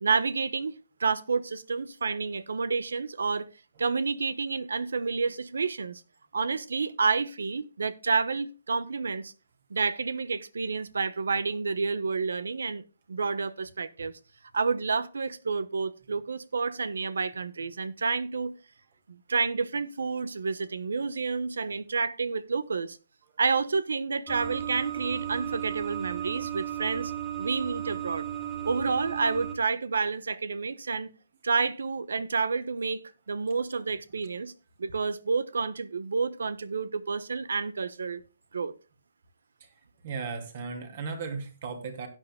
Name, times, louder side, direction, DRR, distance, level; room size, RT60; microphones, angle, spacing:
voice 1, 0.0-3.5 3.8-6.0 6.3-9.3 9.7-14.1 14.5-18.5 19.1-23.0 23.4-27.1 27.4-28.3 28.6-31.1 31.4-34.5 34.8-38.2 38.5-38.7, right 4 dB, 85° right, 1.0 m, -29 dB
sound 1, 24.3-29.5, right 11 dB, 15° right, 2.5 m, -35 dB
voice 2, 40.0-42.1, right 4 dB, 40° right, 2.8 m, -36 dB
16.5 x 9.3 x 2.2 m
hypercardioid pair, 165°, 0 cm